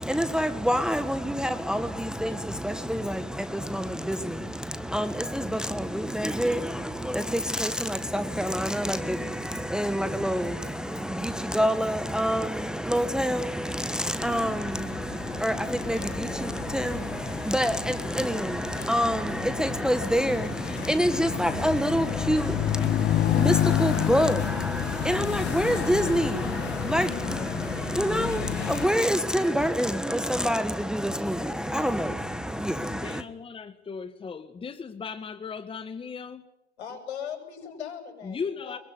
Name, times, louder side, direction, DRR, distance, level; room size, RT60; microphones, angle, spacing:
voice 1, 0.0-33.2, equal, ahead, 1.4 m, -27 dB
sound 1, 14.2-28.9, left 13 dB, 30° left, 1.0 m, -31 dB
voice 2, 32.9-36.5 38.2-38.8, left 5 dB, 15° left, 1.6 m, -37 dB
voice 3, 36.8-38.8, left 8 dB, 75° left, 7.9 m, -39 dB
25.0 x 22.5 x 9.6 m
hypercardioid pair, 100°, 34 cm